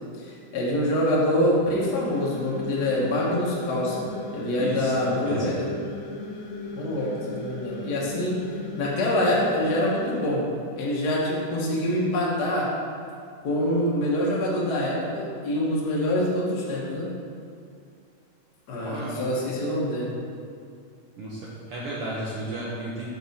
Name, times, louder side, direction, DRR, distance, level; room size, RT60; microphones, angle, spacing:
voice 1, 0.2-4.1 4.3-5.6 6.8-8.4 8.8-10.5 10.8-12.7 13.4-17.1 18.7-20.1, left 1 dB, 65° left, -5 dB, 1.0 m, -25 dB
sound 1, 1.9-10.2, left 3 dB, 85° left, 2.3 m, -36 dB
voice 2, 4.6-5.6 18.8-19.3 21.2-23.1, right 1 dB, 75° right, -7 dB, 1.3 m, -33 dB
7.0 x 4.7 x 4.1 m, 2.4 s
omnidirectional pair, 3.7 m